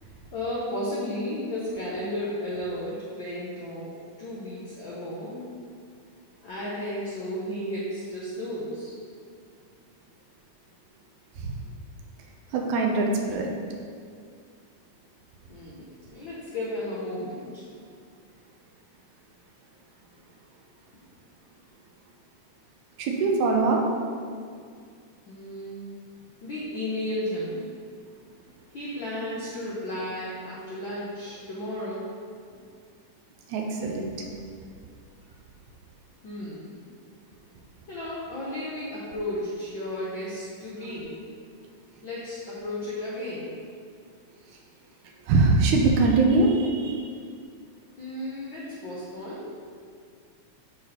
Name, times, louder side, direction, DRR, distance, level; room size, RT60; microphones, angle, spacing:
voice 1, 0.0-3.9 4.2-5.5 6.4-8.9 15.5-17.6 25.3-25.9 26.4-27.7 28.7-32.0 36.2-36.8 37.9-41.2 42.0-43.5 48.0-49.4, left 1 dB, 75° left, -7 dB, 1.1 m, -34 dB
voice 2, 12.5-13.5 23.0-23.8 33.5-34.3 45.3-47.1, right 3 dB, 80° right, 1 dB, 2.1 m, -22 dB
9.8 x 4.1 x 2.9 m, 2.2 s
omnidirectional pair, 3.4 m